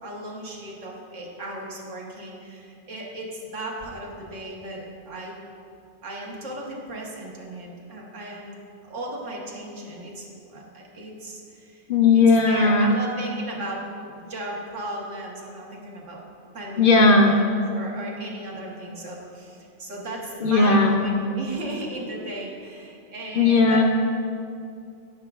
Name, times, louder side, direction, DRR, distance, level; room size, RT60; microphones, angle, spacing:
voice 1, 0.0-5.3 6.0-8.5 8.8-11.8 12.1-16.2 16.5-23.8, right 1 dB, 80° right, -2 dB, 1.5 m, -36 dB
voice 2, 11.9-13.0 16.8-17.3 20.4-21.0 23.3-23.8, left 3 dB, 60° left, 3 dB, 0.6 m, -17 dB
13.0 x 6.0 x 2.3 m, 2.5 s
omnidirectional pair, 1.3 m